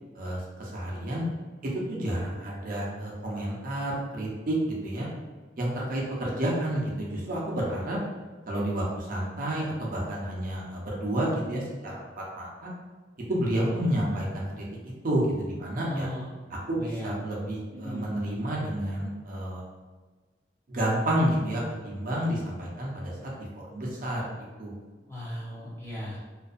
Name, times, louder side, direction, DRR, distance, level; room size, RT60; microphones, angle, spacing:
voice 1, 0.1-1.2 1.6-5.1 5.6-8.0 8.5-12.0 12.3-12.7 13.3-14.6 15.0-16.1 16.5-19.6 20.7-24.3 24.6-24.8, right 1 dB, 50° right, -4 dB, 0.6 m, -30 dB
voice 2, 15.8-16.3 16.8-17.2 17.8-18.1 25.1-26.2, equal, 15° left, -7 dB, 0.6 m, -36 dB
2.5 x 2.3 x 2.4 m, 1.4 s
head